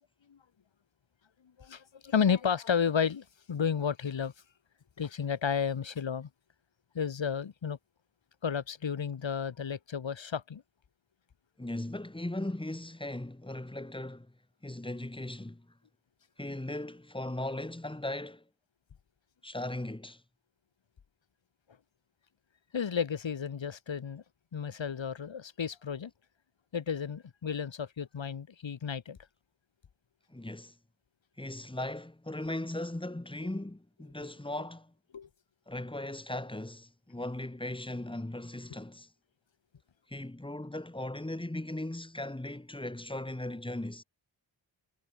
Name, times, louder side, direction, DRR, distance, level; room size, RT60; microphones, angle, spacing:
voice 1, 1.6-4.3 5.0-6.3 6.9-7.8 8.4-10.6 22.7-24.2 24.5-26.1 26.7-29.2 34.2-34.3 35.1-35.3, left 7 dB, 65° left, 6.6 m, -32 dB
voice 2, 11.6-14.3 14.6-15.7 16.4-18.4 19.4-20.2 30.3-30.8 31.4-34.9 35.7-39.1 40.1-44.0, left 1 dB, 10° left, 7.0 m, -38 dB
wide cardioid pair, 130°, 48 cm